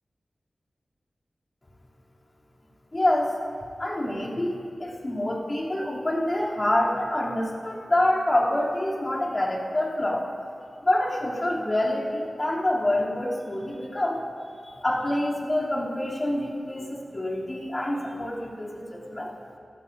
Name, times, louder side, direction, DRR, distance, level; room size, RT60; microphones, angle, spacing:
voice 1, 2.9-3.4 3.8-10.3 10.8-14.2 14.8-19.3, left 1 dB, 35° left, -5 dB, 3.1 m, -26 dB
25.0 x 15.0 x 2.7 m, 2.5 s
wide cardioid pair, 60°, 0 cm